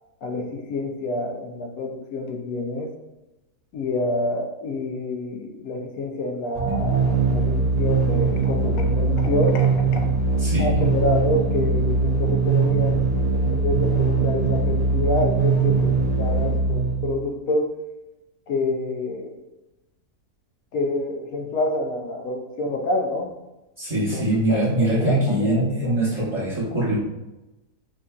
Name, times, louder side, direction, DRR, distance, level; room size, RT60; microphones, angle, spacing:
voice 1, 0.2-2.9 3.7-10.1 10.6-17.7 18.5-19.3 20.7-23.3 23.9-25.9 26.2-26.4, left 2 dB, 70° left, 2 dB, 1.0 m, -28 dB
sound 1, 6.5-17.3, right 4 dB, 55° right, 0.4 m, -21 dB
voice 2, 10.4-10.8 23.8-27.0, right 1 dB, 20° right, -10 dB, 0.9 m, -23 dB
5.1 x 2.6 x 2.3 m, 1.0 s
omnidirectional pair, 1.7 m